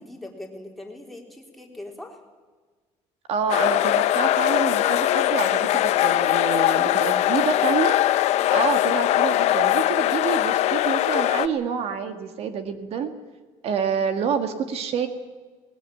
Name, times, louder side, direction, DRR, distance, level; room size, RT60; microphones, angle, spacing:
voice 1, 0.0-2.2 8.3-8.6 13.7-13.8, left 1 dB, ahead, 0 dB, 3.7 m, -41 dB
voice 2, 3.3-8.0 8.5-13.1 13.6-15.1, right 6 dB, 60° right, 8 dB, 1.8 m, -27 dB
sound 1, 3.5-11.5, left 14 dB, 70° left, 0.9 m, -21 dB
21.0 x 20.0 x 9.1 m, 1.4 s
cardioid pair, 140°, 12 cm